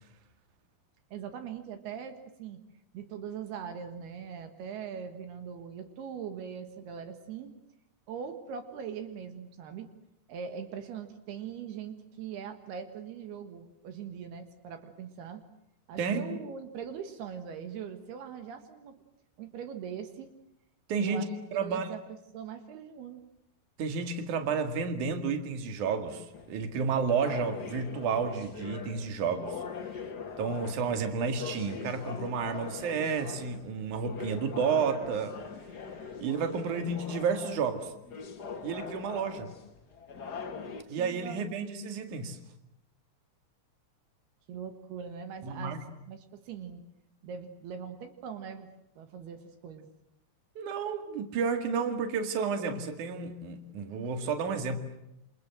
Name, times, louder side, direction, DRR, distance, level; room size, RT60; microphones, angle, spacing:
voice 1, 1.1-2.6 2.9-7.5 8.1-9.9 10.3-15.4 15.9-19.0 19.4-20.3 21.0-22.0 22.3-23.2 40.9-41.9 44.5-45.8 46.1-46.8 47.2-48.7 49.0-49.9, right 7 dB, 75° right, 8 dB, 3.5 m, -41 dB
voice 2, 16.0-16.3 20.9-21.3 21.5-21.9 23.8-29.6 30.4-35.4 36.2-37.9 38.6-39.5 40.9-42.4 45.4-45.8 50.6-54.8, right 5 dB, 55° right, 7 dB, 3.3 m, -31 dB
sound 1, 26.3-40.8, left 5 dB, 70° left, 0.9 m, -42 dB
28.0 x 27.0 x 7.6 m, 0.82 s
omnidirectional pair, 4.7 m